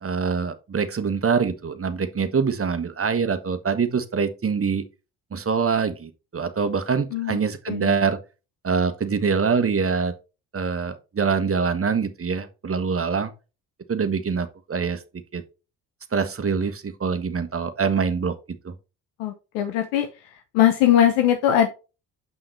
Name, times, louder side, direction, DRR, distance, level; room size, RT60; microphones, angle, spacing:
voice 1, 0.0-4.9 5.3-8.2 8.6-10.1 10.5-13.3 13.9-15.0 15.3-15.4 16.1-18.3 18.6-18.7, right 5 dB, 30° right, 1.3 m, -24 dB
voice 2, 19.2-20.1 20.5-21.7, left 11 dB, 80° left, 0.9 m, -20 dB
7.9 x 5.6 x 3.2 m
hypercardioid pair, 50°, 43 cm